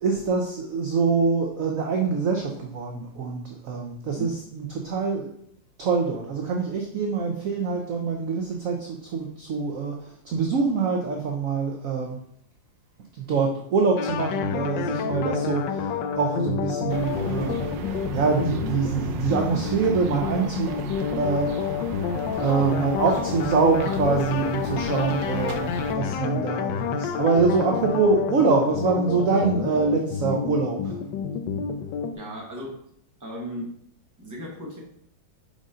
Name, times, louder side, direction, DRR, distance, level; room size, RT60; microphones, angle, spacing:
voice 1, 0.0-5.3 5.8-12.2 13.2-17.7 18.1-20.7 21.2-21.6 22.4-31.0, right 4 dB, 60° right, 2 dB, 0.9 m, -25 dB
sound 1, 14.0-32.1, left 7 dB, 80° left, 1.3 m, -29 dB
sound 2, 16.9-26.0, right 6 dB, 80° right, 1.3 m, -37 dB
voice 2, 32.1-32.8 33.2-33.7 34.2-34.8, equal, 10° right, -3 dB, 1.3 m, -36 dB
5.2 x 5.1 x 3.8 m, 0.69 s
omnidirectional pair, 2.0 m